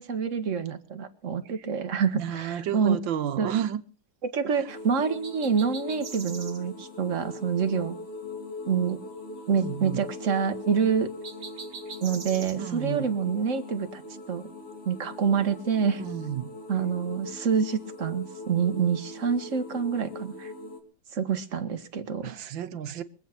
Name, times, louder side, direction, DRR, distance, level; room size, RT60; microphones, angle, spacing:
voice 1, 0.0-3.0 3.4-3.5 4.2-8.0 8.7-9.0 9.5-11.1 12.0-14.0 14.3-14.5 14.9-16.0 16.7-20.5 21.1-22.4, right 6 dB, 45° right, 1.8 m, -27 dB
voice 2, 2.1-3.8 4.6-4.7 9.6-10.1 12.6-13.1 16.0-16.5 22.2-23.0, right 10 dB, 85° right, 1.8 m, -31 dB
sound 1, 4.7-20.8, left 2 dB, 40° left, 3.1 m, -41 dB
sound 2, 5.2-6.6 11.2-12.6, right 5 dB, 65° right, 2.4 m, -41 dB
24.0 x 8.3 x 6.0 m
omnidirectional pair, 2.0 m